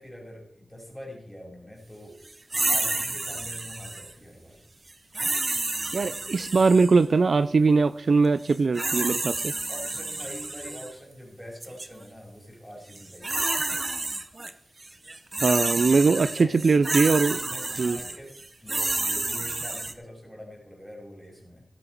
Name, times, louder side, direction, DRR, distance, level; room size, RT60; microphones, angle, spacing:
voice 1, 0.0-4.6 9.7-13.6 16.1-16.6 17.3-18.3 18.6-21.6, equal, ahead, -1 dB, 4.4 m, -44 dB
sound 1, 2.5-4.1 5.1-7.0 8.5-10.9 11.6-11.9 12.9-14.5 14.8-19.9, right 2 dB, 35° right, 0.9 m, -30 dB
voice 2, 5.9-9.5 15.4-17.4 17.8-18.0, right 4 dB, 60° right, 14 dB, 0.3 m, -21 dB
16.0 x 9.0 x 4.5 m, 0.73 s
wide cardioid pair, 110°, 0 cm